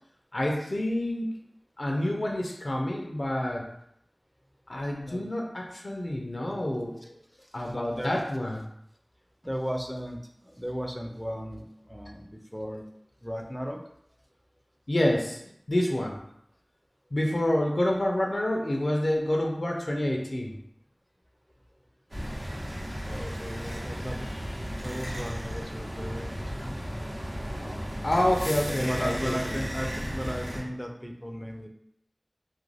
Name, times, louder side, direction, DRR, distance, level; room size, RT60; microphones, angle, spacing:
voice 1, 0.3-1.3 1.8-3.6 4.7-7.0 7.5-8.6 14.9-15.4 15.7-16.2 17.1-20.5 28.0-29.5, left 1 dB, 75° left, 0 dB, 0.4 m, -28 dB
voice 2, 7.6-8.2 9.4-12.8 13.2-13.8 23.0-24.3 24.8-27.0 27.6-28.0 28.6-31.7, equal, ahead, 2 dB, 0.4 m, -36 dB
sound 1, 22.1-30.6, equal, 80° right, 0.8 m, -35 dB
2.5 x 2.2 x 3.2 m, 0.73 s
wide cardioid pair, 40°, 0 cm